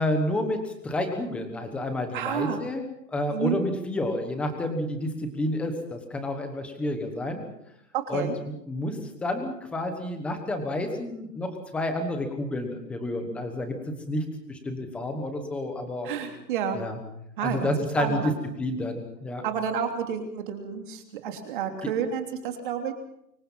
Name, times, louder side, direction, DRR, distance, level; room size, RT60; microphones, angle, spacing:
voice 1, 0.0-7.4 8.1-16.1 16.7-17.0 17.4-18.3 18.6-19.4 21.8-21.9, left 1 dB, ahead, 6 dB, 1.2 m, -30 dB
voice 2, 2.1-2.6 3.3-3.6 7.9-8.4 16.0-16.8 17.4-17.7 18.0-18.3 19.4-22.9, right 8 dB, 30° right, 5 dB, 3.1 m, -30 dB
25.5 x 23.0 x 5.7 m, 0.79 s
hypercardioid pair, 170°, 50 cm